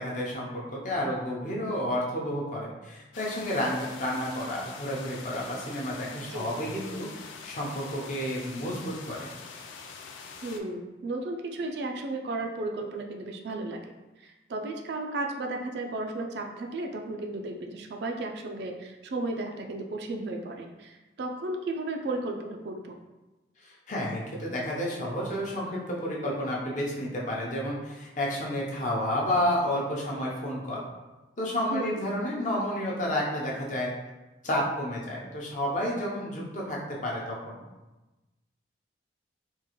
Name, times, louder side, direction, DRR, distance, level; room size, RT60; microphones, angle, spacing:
voice 1, 0.0-9.3 23.6-30.8 31.4-33.9 34.4-37.6, left 1 dB, 40° left, -4 dB, 0.7 m, -31 dB
sound 1, 3.1-10.6, left 5 dB, 85° left, 0.4 m, -44 dB
voice 2, 10.4-13.8 14.2-22.9 31.7-32.0, right 2 dB, 60° right, 2 dB, 0.4 m, -34 dB
3.6 x 2.4 x 3.0 m, 1.1 s
head